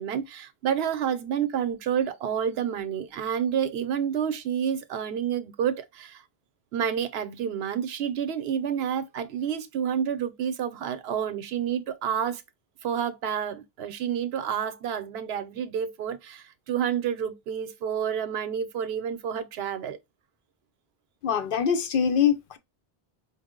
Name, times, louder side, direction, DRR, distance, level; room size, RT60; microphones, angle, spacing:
voice 1, 0.0-6.2 6.7-12.4 12.8-20.0, right 8 dB, 80° right, 0.8 m, -29 dB
voice 2, 21.2-22.6, left 8 dB, 65° left, 0.7 m, -23 dB
4.5 x 2.0 x 3.6 m
omnidirectional pair, 1.0 m